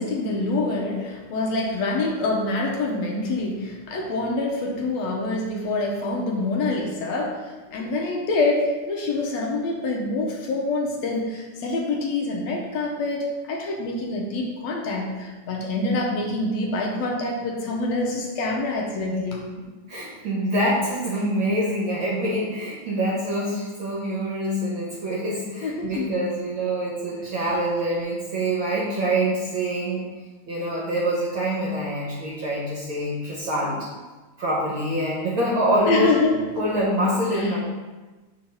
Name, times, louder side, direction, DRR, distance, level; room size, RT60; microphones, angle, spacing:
voice 1, 0.0-19.5 25.6-26.1 35.9-36.4 37.3-37.6, left 2 dB, 70° left, 0 dB, 2.0 m, -26 dB
voice 2, 19.9-30.0 30.5-33.9 34.4-36.1 36.6-37.6, right 1 dB, 55° right, -4 dB, 1.5 m, -25 dB
5.6 x 4.3 x 5.4 m, 1.2 s
omnidirectional pair, 3.4 m